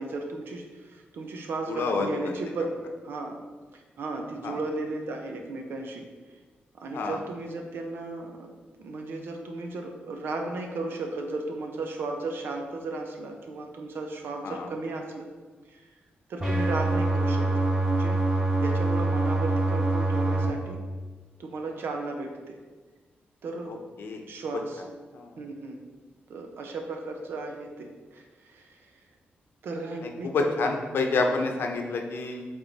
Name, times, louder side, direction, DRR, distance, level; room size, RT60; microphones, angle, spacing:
voice 1, 0.0-2.6 3.0-3.4 3.7-6.1 6.8-8.5 8.8-15.3 15.7-15.8 16.3-18.3 18.6-20.9 21.4-22.6 23.4-23.8 24.3-24.8 25.4-25.7 26.3-28.9 29.6-30.5 31.1-31.2, right 3 dB, 75° right, 3 dB, 0.9 m, -35 dB
voice 2, 1.7-2.4 4.4-4.6 6.9-7.2 14.4-14.7 24.0-24.2 25.1-25.3 30.3-32.5, left 3 dB, 75° left, 3 dB, 0.8 m, -28 dB
sound 1, 16.4-20.4, right 2 dB, 25° right, 1.9 m, -25 dB
7.3 x 3.8 x 4.1 m, 1.4 s
wide cardioid pair, 135°, 4 cm